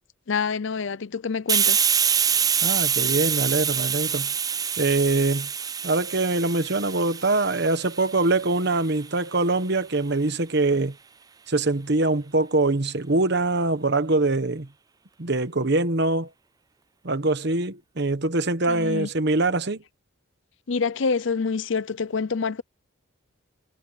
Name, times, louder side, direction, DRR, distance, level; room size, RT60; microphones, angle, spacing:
voice 1, 0.3-1.9 18.7-19.1 20.7-22.6, left 5 dB, 60° left, 0.6 m, -26 dB
Hiss, 1.5-8.9, right 7 dB, 15° right, 0.4 m, -25 dB
voice 2, 2.6-4.3 4.8-5.5 5.8-10.9 11.5-14.7 15.2-16.3 17.0-19.8, right 2 dB, 50° right, 1.2 m, -23 dB
head